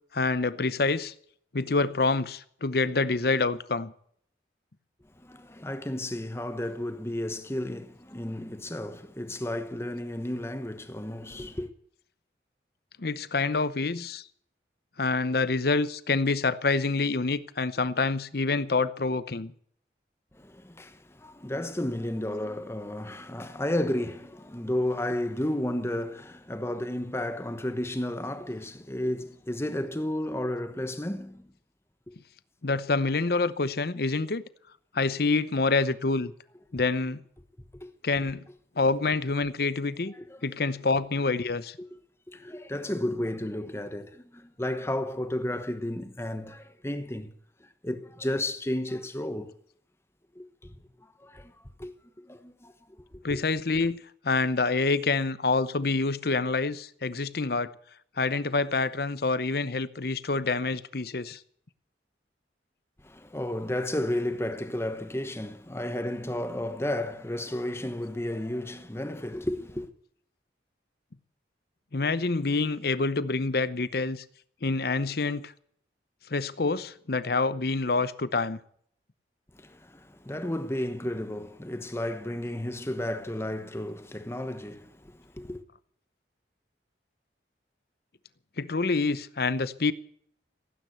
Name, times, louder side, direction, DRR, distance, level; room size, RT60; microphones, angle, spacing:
voice 1, 0.1-1.1 1.5-3.9 13.0-14.2 15.0-19.5 32.6-34.4 34.9-36.3 36.7-37.2 38.0-38.4 38.8-40.1 40.4-41.8 53.2-57.7 58.2-61.4 71.9-74.2 74.6-75.5 76.3-78.6 88.6-89.9, left 3 dB, 55° left, 0.8 m, -27 dB
voice 2, 5.2-11.7 20.4-31.5 37.7-37.9 40.2-40.4 41.8-41.9 42.3-47.3 47.6-49.5 50.3-50.5 51.2-51.5 51.8-51.9 52.3-52.7 53.3-53.4 63.0-69.9 79.5-85.6, left 1 dB, 15° left, 1.0 m, -32 dB
16.5 x 9.4 x 8.0 m
head